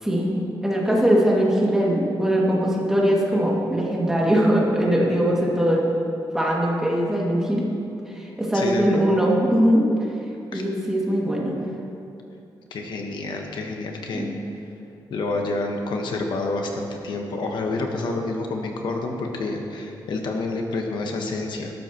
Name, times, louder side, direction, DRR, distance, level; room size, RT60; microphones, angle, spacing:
voice 1, 0.0-5.9 6.3-7.6 8.1-9.9 10.5-11.6 14.1-14.3, equal, 5° right, -4 dB, 2.4 m, -21 dB
voice 2, 8.5-9.0 10.5-10.6 12.7-14.2 15.1-21.7, left 2 dB, 70° left, 2 dB, 1.4 m, -28 dB
20.0 x 12.0 x 3.1 m, 2.8 s
wide cardioid pair, 155°, 8 cm